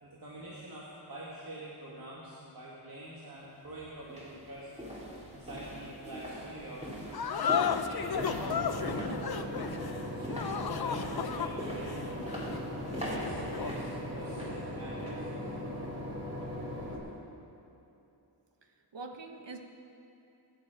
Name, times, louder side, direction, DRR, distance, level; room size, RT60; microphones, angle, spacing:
voice 1, 0.0-4.7 5.3-9.6 10.1-12.5 13.0-15.5, right 1 dB, 55° right, -6 dB, 2.3 m, -46 dB
sound 1, 3.3-3.4 4.0-15.3 15.6-15.9 16.3-16.4, equal, 15° right, 3.0 m, -42 dB
sound 2, 7.1-13.9, left 7 dB, 60° left, 0.7 m, -34 dB
Boat Water vehicle / Engine, 8.0-17.0, equal, 30° right, 3.2 m, -39 dB
voice 2, 18.6-19.6, right 3 dB, 75° right, 4 dB, 1.4 m, -45 dB
23.5 x 9.7 x 5.1 m, 2.9 s
wide cardioid pair, 125°, 43 cm